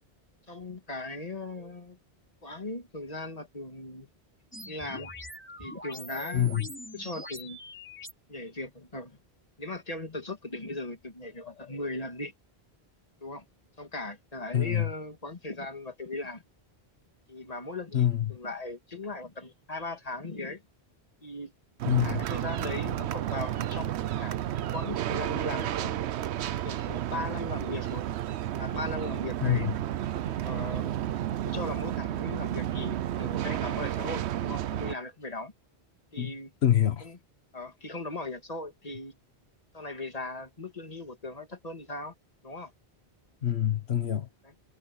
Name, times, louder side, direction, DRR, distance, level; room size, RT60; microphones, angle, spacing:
voice 1, 0.5-2.0 2.4-4.1 4.7-5.1 5.6-7.6 8.3-9.2 9.6-12.3 13.2-13.4 13.8-16.4 17.3-20.6 21.2-21.5 22.0-24.4 24.6-26.0 26.6-28.2 28.6-29.7 30.2-30.9 31.4-35.5 36.1-36.5 37.0-37.2 37.5-39.1 39.7-42.1 42.4-42.7 44.4-44.5, left 2 dB, 35° left, 2.2 m, -38 dB
sound 1, 4.5-8.1, left 1 dB, 10° left, 3.3 m, -43 dB
voice 2, 6.3-6.7 14.5-14.9 17.9-18.3 21.9-22.2 29.4-29.7 36.2-36.3 36.6-37.1 43.4-44.3, left 10 dB, 75° left, 1.3 m, -26 dB
sound 2, 21.8-35.0, right 11 dB, 85° right, 0.9 m, -32 dB
omnidirectional pair, 1.1 m